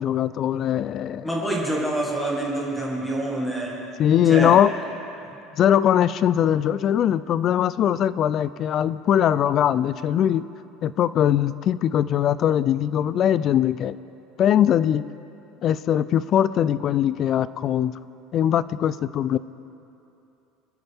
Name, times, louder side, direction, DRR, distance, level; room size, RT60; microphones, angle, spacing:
voice 1, 0.0-1.3 4.0-4.7 5.6-10.5 10.8-14.0 14.4-15.0 15.6-17.9 18.3-19.4, left 10 dB, 35° left, 17 dB, 0.3 m, -21 dB
voice 2, 1.2-3.8 4.3-4.7 5.2-5.3, right 1 dB, ahead, -3 dB, 2.0 m, -26 dB
26.0 x 9.4 x 3.5 m, 2.8 s
cardioid pair, 170°, 0 cm